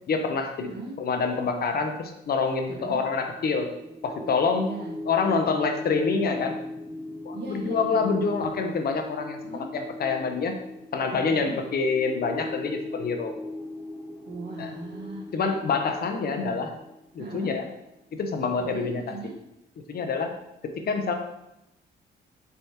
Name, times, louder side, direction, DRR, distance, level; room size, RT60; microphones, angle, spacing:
voice 1, 0.1-0.7 1.0-3.7 4.0-4.7 5.1-6.6 7.2-10.5 10.9-13.4 14.6-14.7 15.3-16.7 17.1-17.7 18.2-19.0 19.9-20.3 20.8-21.1, left 4 dB, 50° left, 5 dB, 0.6 m, -26 dB
voice 2, 0.6-1.0 2.7-3.1 4.6-4.9 7.3-8.0 9.4-9.7 11.3-11.6 14.2-15.2 17.2-17.6 18.6-19.4, right 3 dB, 55° right, -1 dB, 1.2 m, -38 dB
sound 1, 2.9-17.8, left 1 dB, 30° right, 0.9 m, -39 dB
4.3 x 3.4 x 2.8 m, 0.88 s
cardioid pair, 90°, 20 cm